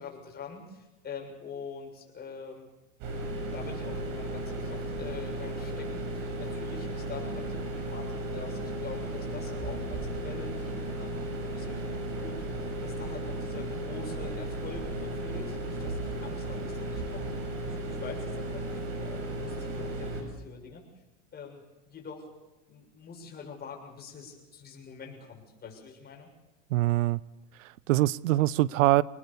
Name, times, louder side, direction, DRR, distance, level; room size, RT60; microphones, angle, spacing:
voice 1, 0.0-2.7 3.5-11.9 12.2-12.5 12.8-20.9 21.3-22.3 22.7-26.3, left 5 dB, 25° left, 7.0 m, -45 dB
sound 1, 3.0-20.2, right 1 dB, 55° right, 7.8 m, -35 dB
voice 2, 26.7-27.2 27.6-29.0, right 16 dB, 90° right, 0.7 m, -24 dB
27.5 x 20.0 x 7.1 m
supercardioid pair, 130°, 38 cm